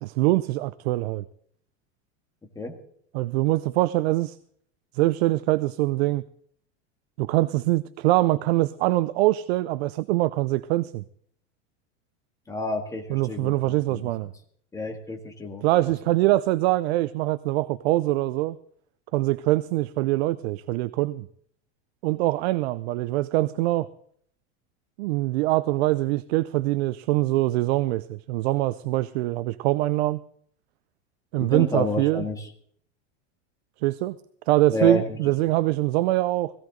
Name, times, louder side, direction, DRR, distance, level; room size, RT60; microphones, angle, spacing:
voice 1, 0.0-1.2 3.1-4.4 4.9-6.2 7.2-11.0 13.1-14.3 15.6-18.6 19.1-21.3 22.0-23.9 25.0-30.2 31.3-32.2 33.8-34.2 34.5-36.5, right 17 dB, 70° right, 16 dB, 0.6 m, -23 dB
voice 2, 12.5-14.1 14.7-15.6 31.3-32.5 34.7-35.2, left 2 dB, 10° left, 4 dB, 1.7 m, -29 dB
17.0 x 16.5 x 3.9 m, 0.62 s
supercardioid pair, 165°, 34 cm